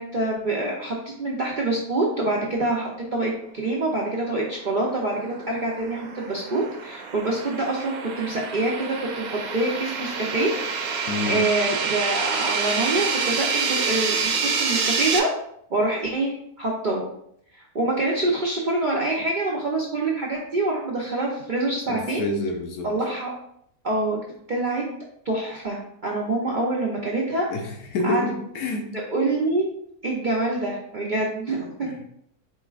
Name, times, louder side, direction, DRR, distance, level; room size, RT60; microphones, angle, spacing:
voice 1, 0.0-8.9 9.2-10.5 10.9-15.3 15.7-17.0 17.5-22.2 22.8-23.3 23.8-24.2 24.5-24.8 25.2-27.5 28.0-28.2 29.1-29.7 30.0-31.9, right 2 dB, 55° right, -3 dB, 0.5 m, -26 dB
sound 1, 4.8-15.2, right 5 dB, 70° right, 1.1 m, -27 dB
voice 2, 11.1-11.4 21.9-22.9 27.5-28.9 31.8-32.0, left 2 dB, 80° left, 3 dB, 1.3 m, -28 dB
4.5 x 4.3 x 2.4 m, 0.71 s
omnidirectional pair, 1.6 m